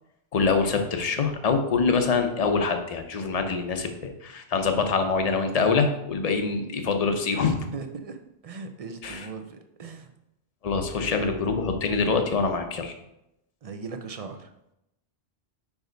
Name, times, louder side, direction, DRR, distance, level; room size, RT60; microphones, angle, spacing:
voice 1, 0.3-7.7 9.0-9.3 10.6-12.9, left 4 dB, 40° left, 6 dB, 0.7 m, -25 dB
voice 2, 7.4-8.2 8.4-10.1 10.9-11.5 13.6-14.5, right 4 dB, 45° right, 6 dB, 0.6 m, -39 dB
5.2 x 4.8 x 3.9 m, 0.85 s
omnidirectional pair, 1.1 m